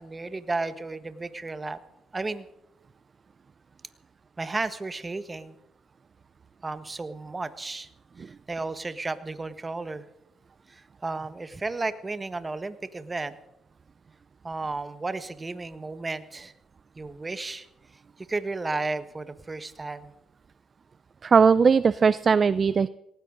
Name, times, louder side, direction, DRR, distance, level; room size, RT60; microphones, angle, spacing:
voice 1, 0.0-1.8 2.1-2.4 4.4-5.5 6.6-7.9 8.3-10.1 10.7-13.4 14.4-16.5 17.0-17.7 18.3-20.1, right 3 dB, 25° right, 11 dB, 1.4 m, -33 dB
voice 2, 21.2-22.9, right 5 dB, 40° right, 16 dB, 0.5 m, -19 dB
19.0 x 18.0 x 3.9 m, 0.84 s
cardioid pair, 90°, 0 cm